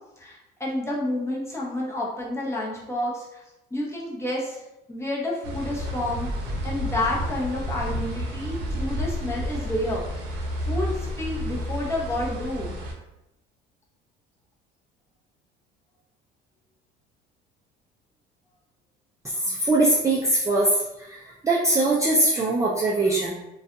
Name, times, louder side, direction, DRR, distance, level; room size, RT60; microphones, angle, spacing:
voice 1, 0.2-3.4 3.7-4.6 4.9-6.3 6.6-10.0 10.3-12.7, left 1 dB, 15° left, -4 dB, 0.8 m, -30 dB
sound 1, 5.4-12.9, equal, 85° right, 0.7 m, -31 dB
voice 2, 19.2-20.8 21.1-23.3, right 2 dB, 15° right, -4 dB, 0.4 m, -22 dB
2.5 x 2.2 x 2.5 m, 0.92 s
supercardioid pair, 90°, 21 cm